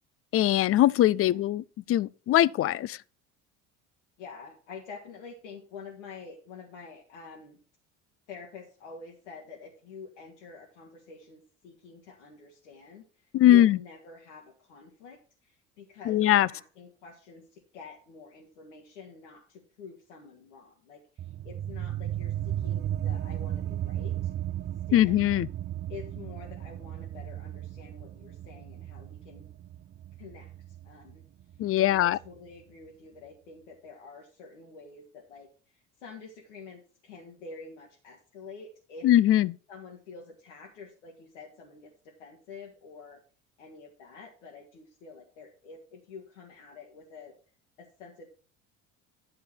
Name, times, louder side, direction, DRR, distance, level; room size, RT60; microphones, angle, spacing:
voice 1, 0.3-3.0 13.3-13.8 16.1-16.5 24.9-25.5 31.6-32.2 39.0-39.6, left 13 dB, 40° left, 0.5 m, -21 dB
voice 2, 4.2-7.6 8.3-24.3 24.9-25.2 25.9-29.5 30.2-30.5 30.8-31.2 31.8-39.1 39.7-43.2 43.6-47.3 47.8-48.3, left 4 dB, 85° left, 1.9 m, -48 dB
sound 1, 21.2-32.3, right 11 dB, 30° right, 0.4 m, -35 dB
11.0 x 6.7 x 4.5 m
hypercardioid pair, 65°, 35 cm